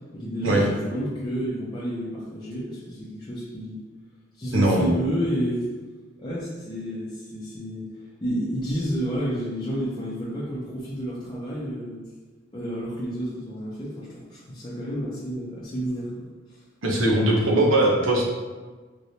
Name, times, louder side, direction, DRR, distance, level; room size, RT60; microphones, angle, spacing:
voice 1, 0.1-3.8 4.4-5.7 6.2-7.9 8.2-12.1 12.5-16.6, equal, 20° left, -9 dB, 0.5 m, -30 dB
voice 2, 4.5-4.9 16.8-18.2, right 1 dB, 80° right, -2 dB, 0.7 m, -20 dB
3.3 x 3.0 x 2.7 m, 1.3 s
head